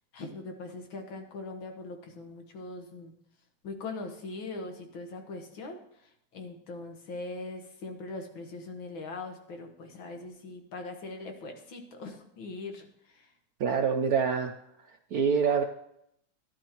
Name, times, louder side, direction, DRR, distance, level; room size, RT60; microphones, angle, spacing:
voice 1, 0.1-3.1 3.6-13.3, left 3 dB, 70° left, 4 dB, 2.1 m, -41 dB
voice 2, 13.6-14.5 14.8-15.6, right 6 dB, 85° right, 5 dB, 0.8 m, -26 dB
13.0 x 11.0 x 3.0 m, 0.75 s
omnidirectional pair, 2.3 m